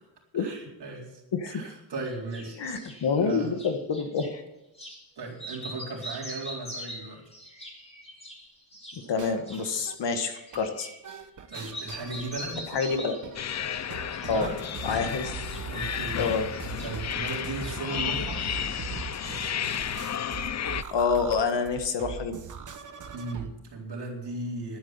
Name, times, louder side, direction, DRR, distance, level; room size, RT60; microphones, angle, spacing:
voice 1, 0.3-2.8 3.2-3.5 5.2-7.2 11.5-12.7 14.2-14.6 15.7-16.2 16.8-18.4 23.1-24.8, right 2 dB, 55° right, -1 dB, 4.1 m, -36 dB
voice 2, 1.3-1.7 2.6-4.4 8.9-10.9 12.7-13.2 14.3-14.5 14.8-15.3 16.2-16.5 20.9-22.4, left 5 dB, 60° left, 7 dB, 1.7 m, -27 dB
sound 1, 2.0-4.3 4.7-5.0 5.3-11.2 11.5-13.3 13.7-14.5 14.7-18.0 18.3-19.3, equal, 15° left, 3.5 m, -44 dB
sound 2, 9.0-10.2 10.5-10.7 11.0-23.5, right 7 dB, 40° right, 1.1 m, -41 dB
sound 3, 13.3-20.8, left 9 dB, 35° left, 0.5 m, -33 dB
11.5 x 9.4 x 8.7 m, 0.93 s
wide cardioid pair, 145°, 49 cm